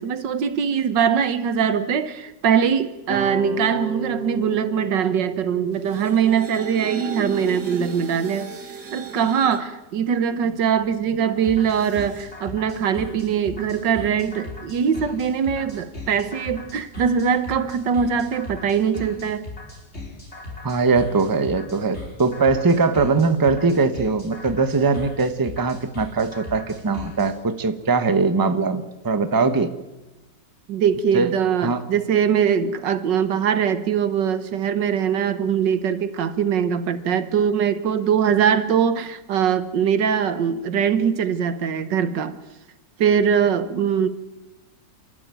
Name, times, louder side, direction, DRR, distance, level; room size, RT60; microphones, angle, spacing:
voice 1, 0.0-8.6 8.9-19.5 30.7-42.3 43.0-44.1, right 7 dB, 85° right, 12 dB, 1.8 m, -22 dB
sound 1, 3.1-8.2, right 2 dB, 40° right, 2.8 m, -35 dB
sound 2, 5.7-9.6 10.2-12.2, right 5 dB, 65° right, 2.6 m, -36 dB
sound 3, 11.4-27.3, left 2 dB, 35° left, 5.8 m, -37 dB
voice 2, 20.6-29.7 31.1-31.3 31.6-31.8, right 4 dB, 15° right, 10 dB, 0.9 m, -21 dB
28.5 x 12.5 x 9.2 m, 1.0 s
omnidirectional pair, 1.9 m